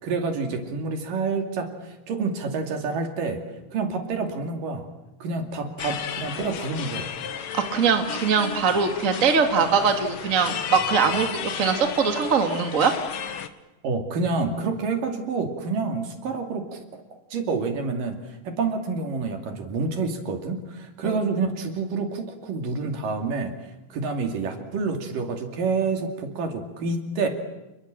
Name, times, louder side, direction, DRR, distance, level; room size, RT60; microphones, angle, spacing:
voice 1, 0.0-3.4 3.7-4.9 5.2-7.1 13.8-16.8 17.3-23.5 23.9-27.3, right 4 dB, 70° right, 5 dB, 4.1 m, -28 dB
sound 1, 5.8-13.5, left 8 dB, 60° left, 1.7 m, -34 dB
voice 2, 7.5-12.9 21.0-21.2, right 5 dB, 25° right, 5 dB, 2.2 m, -22 dB
29.5 x 22.0 x 7.6 m, 1.0 s
omnidirectional pair, 4.0 m